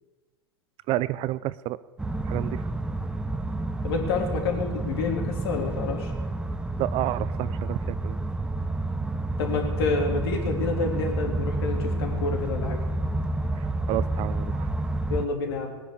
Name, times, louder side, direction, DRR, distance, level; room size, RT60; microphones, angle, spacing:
voice 1, 0.9-1.8 2.2-2.7 6.8-8.2 13.6-14.7, right 15 dB, 40° right, 17 dB, 0.6 m, -30 dB
sound 1, 2.0-15.3, right 2 dB, 5° right, 0.8 m, -29 dB
voice 2, 3.8-6.1 9.4-12.8 15.1-15.8, left 4 dB, 65° left, 2 dB, 3.4 m, -28 dB
19.5 x 10.0 x 6.8 m, 1.3 s
hypercardioid pair, 100°, 14 cm